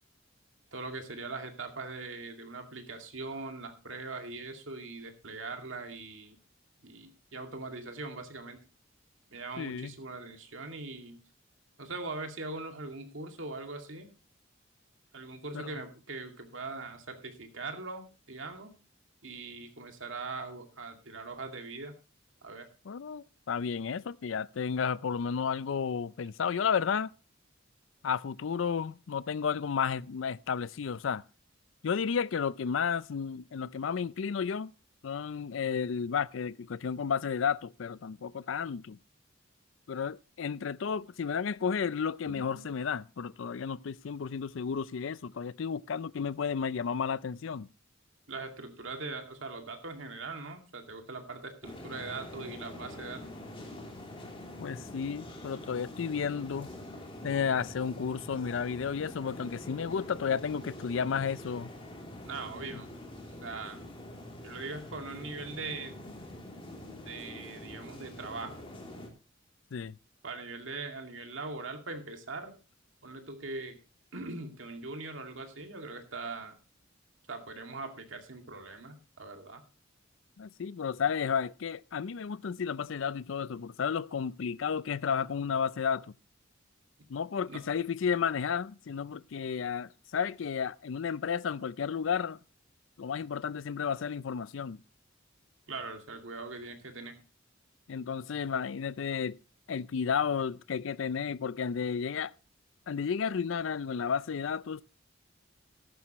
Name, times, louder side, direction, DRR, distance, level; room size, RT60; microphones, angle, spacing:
voice 1, 0.7-6.4 6.8-8.6 9.3-11.2 11.8-14.1 15.1-18.7 19.2-21.9 22.4-22.7 42.3-42.7 48.3-53.2 62.2-62.9 63.4-63.8 64.4-66.0 66.8-68.7 70.2-72.5 73.0-73.8 74.1-76.6 77.3-79.6 87.5-87.6 95.7-97.2, right 3 dB, 75° right, 2.3 m, -41 dB
voice 2, 9.6-9.9 15.5-15.7 22.9-27.1 28.0-31.2 31.8-34.7 35.0-39.0 39.9-47.7 54.6-56.7 57.2-61.7 69.7-70.0 80.4-86.1 87.1-92.4 93.0-94.8 97.9-99.4 99.7-102.3 102.9-104.8, left 6 dB, 75° left, 0.4 m, -32 dB
sound 1, 51.6-69.1, left 1 dB, 30° left, 3.0 m, -45 dB
14.0 x 11.5 x 3.0 m
head